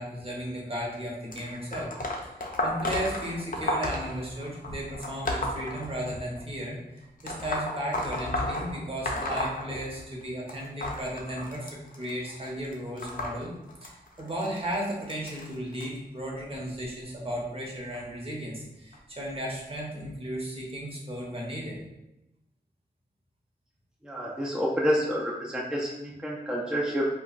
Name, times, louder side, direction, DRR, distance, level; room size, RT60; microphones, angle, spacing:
voice 1, 0.0-1.9 2.6-13.5 13.8-13.9 14.2-21.8, equal, 35° right, -3 dB, 0.9 m, -35 dB
sound 1, 1.3-6.4 7.2-10.2 10.5-15.9 16.6-16.9 17.9-18.0 18.9-19.0 19.7-19.8, left 1 dB, 55° left, 0.5 m, -33 dB
voice 2, 24.0-27.1, equal, 5° right, -4 dB, 0.5 m, -28 dB
2.2 x 2.2 x 3.8 m, 0.91 s
cardioid pair, 60°, 17 cm